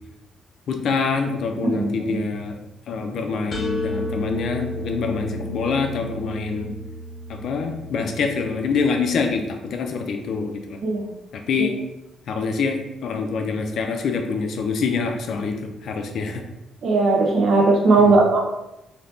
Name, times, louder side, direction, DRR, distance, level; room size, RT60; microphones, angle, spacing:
voice 1, 0.7-2.6 2.9-6.7 7.3-10.8 11.3-11.8 12.3-15.6 15.8-16.4 18.0-18.2, left 5 dB, 70° left, 5 dB, 0.5 m, -25 dB
voice 2, 1.6-2.2 10.8-11.0 11.6-11.7 16.8-18.4, right 3 dB, 60° right, 1 dB, 0.7 m, -18 dB
sound 1, 3.5-9.3, equal, 40° left, 0.9 m, -33 dB
3.3 x 2.9 x 2.6 m, 0.91 s
cardioid pair, 90°, 0 cm